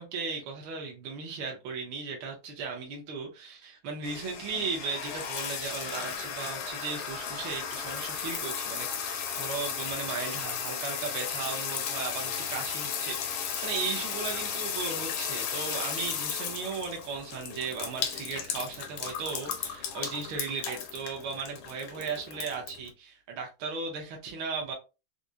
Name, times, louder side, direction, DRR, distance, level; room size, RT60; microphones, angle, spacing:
voice 1, 0.0-24.7, right 5 dB, 70° right, 1.6 m, -36 dB
sound 1, 4.0-22.9, left 7 dB, 80° left, 1.6 m, -35 dB
4.8 x 2.1 x 2.7 m
omnidirectional pair, 2.4 m